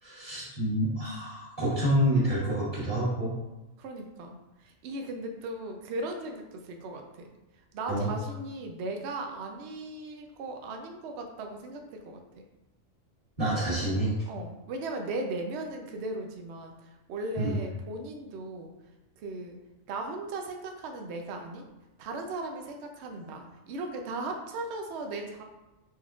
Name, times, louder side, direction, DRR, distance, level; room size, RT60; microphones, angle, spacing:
voice 1, 0.0-3.3 7.9-8.1 13.4-14.1 17.4-17.6, right 1 dB, 40° right, -11 dB, 1.7 m, -27 dB
voice 2, 3.8-7.3 7.7-12.2 14.3-18.7 19.2-19.6 19.9-21.7 22.0-25.4, right 2 dB, 65° right, 3 dB, 0.8 m, -37 dB
4.3 x 3.6 x 2.3 m, 1.0 s
omnidirectional pair, 1.4 m